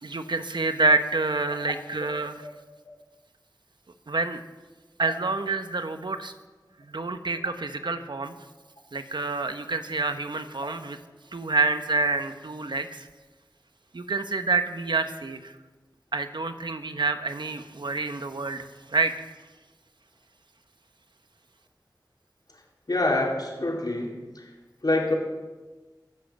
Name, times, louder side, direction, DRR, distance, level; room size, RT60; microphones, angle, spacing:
voice 1, 0.0-2.5 4.1-4.4 5.0-6.3 6.8-8.3 8.9-11.0 11.3-13.1 13.9-15.5 16.1-19.1, right 3 dB, 80° right, 7 dB, 1.2 m, -27 dB
voice 2, 22.9-24.5 24.8-25.1, left 2 dB, 60° left, -1 dB, 4.5 m, -26 dB
23.5 x 7.8 x 7.5 m, 1.2 s
wide cardioid pair, 40°, 8 cm